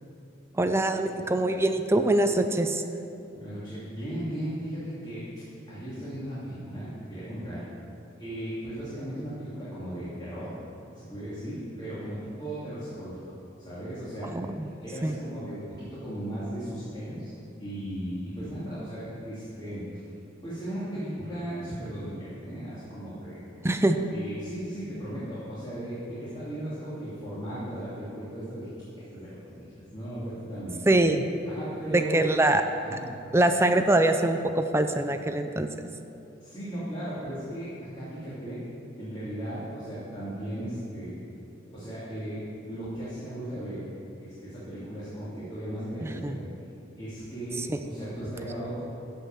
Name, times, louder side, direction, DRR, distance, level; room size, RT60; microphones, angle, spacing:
voice 1, 0.6-2.8 14.3-14.7 15.0-15.1 23.6-24.0 30.9-31.3 31.9-32.6 33.3-35.7 46.0-46.4 47.7-47.8, right 1 dB, 15° right, 7 dB, 0.4 m, -23 dB
voice 2, 3.3-5.2 5.7-7.6 8.2-10.5 10.9-13.2 13.6-14.3 14.6-17.3 17.6-20.0 20.4-23.4 24.1-28.7 29.1-30.8 31.5-32.2 32.8-33.0 36.4-38.6 39.0-41.1 41.7-43.8 44.2-46.4 47.0-48.8, right 1 dB, 25° left, -11 dB, 2.8 m, -36 dB
14.0 x 5.6 x 7.4 m, 2.8 s
head